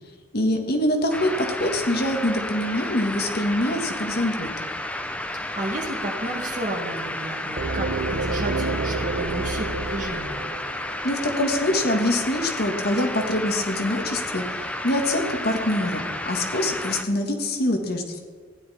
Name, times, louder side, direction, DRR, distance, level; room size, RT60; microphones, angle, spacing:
voice 1, 0.3-4.7 11.0-18.2, left 1 dB, 55° left, 3 dB, 1.6 m, -24 dB
sound 1, 1.1-17.0, left 1 dB, 5° left, 0.7 m, -32 dB
voice 2, 5.3-10.3, right 2 dB, 40° right, -3 dB, 2.2 m, -32 dB
sound 2, 7.6-11.5, right 3 dB, 60° right, 0.8 m, -29 dB
15.5 x 10.5 x 4.3 m, 1.5 s
head